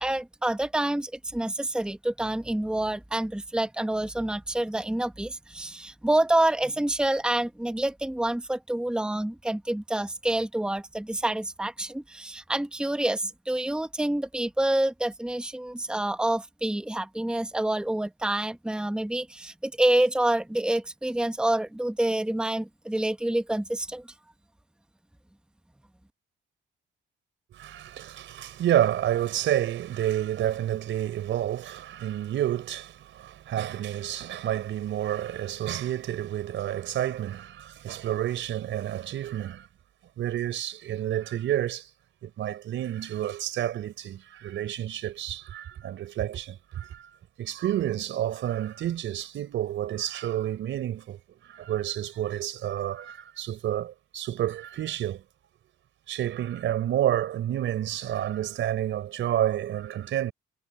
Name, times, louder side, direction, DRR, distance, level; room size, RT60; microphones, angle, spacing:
voice 1, 0.0-24.0, right 1 dB, 5° right, 1.2 m, -27 dB
voice 2, 27.5-39.7 40.2-41.9 42.2-55.2 56.1-60.3, right 12 dB, 75° right, 4.5 m, -29 dB
cardioid pair, 90°, 20 cm